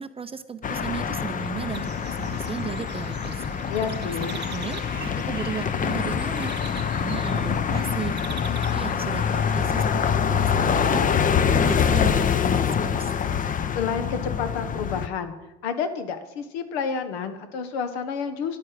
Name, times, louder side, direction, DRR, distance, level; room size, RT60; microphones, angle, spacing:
voice 1, 0.0-3.4 4.0-6.5 6.9-8.1 8.5-11.1 11.4-13.1, right 7 dB, 20° right, 11 dB, 0.5 m, -35 dB
sound 1, 0.6-15.1, left 7 dB, 25° left, 0.7 m, -25 dB
sound 2, 1.7-9.9, right 9 dB, 35° right, 0.9 m, -43 dB
voice 2, 3.7-4.4 13.7-15.3 15.6-18.6, left 6 dB, 75° left, 10 dB, 1.4 m, -29 dB
11.0 x 8.7 x 5.0 m, 1.0 s
hypercardioid pair, 85°, 32 cm